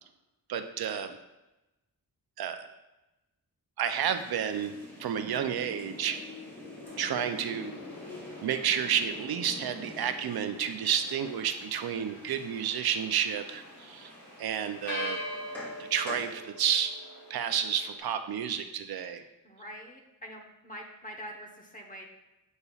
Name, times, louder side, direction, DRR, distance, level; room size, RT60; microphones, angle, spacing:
voice 1, 0.5-1.2 2.4-2.7 3.8-6.2 7.0-7.8 8.4-14.1 14.4-15.2 15.8-17.0 17.3-19.2, right 8 dB, 80° right, 9 dB, 0.5 m, -31 dB
sound 1, 3.9-16.3, left 2 dB, 5° left, 2.3 m, -47 dB
sound 2, 6.8-18.0, left 1 dB, 50° left, 1.4 m, -44 dB
voice 2, 19.4-22.1, equal, 20° left, 1 dB, 1.0 m, -44 dB
8.1 x 5.4 x 2.4 m, 1.0 s
wide cardioid pair, 105°, 37 cm